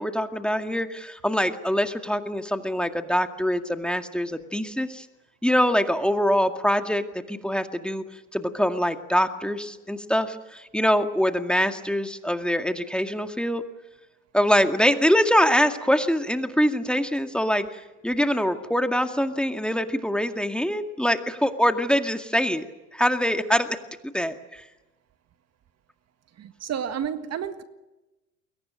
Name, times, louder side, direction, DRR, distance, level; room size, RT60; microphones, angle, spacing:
voice 1, 0.0-5.1 5.4-8.0 8.3-13.6 14.3-23.8 24.0-24.7, equal, ahead, 6 dB, 2.1 m, -24 dB
voice 2, 26.4-27.6, right 8 dB, 40° right, 9 dB, 1.7 m, -31 dB
29.0 x 22.5 x 6.5 m, 1.0 s
hypercardioid pair, 80°, 38 cm